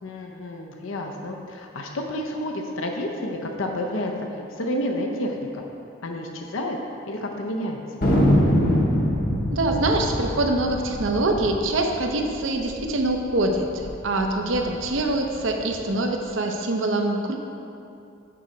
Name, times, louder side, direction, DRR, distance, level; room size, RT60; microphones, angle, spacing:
voice 1, 0.0-5.6 6.0-6.8 7.1-7.8, left 1 dB, 85° left, 2 dB, 0.7 m, -30 dB
Thunder, 8.0-12.8 13.1-13.2 13.4-13.9 14.4-15.6, equal, 45° left, 0.9 m, -23 dB
voice 2, 9.5-17.4, right 2 dB, 75° right, 3 dB, 0.7 m, -24 dB
6.8 x 4.5 x 5.0 m, 2.6 s
head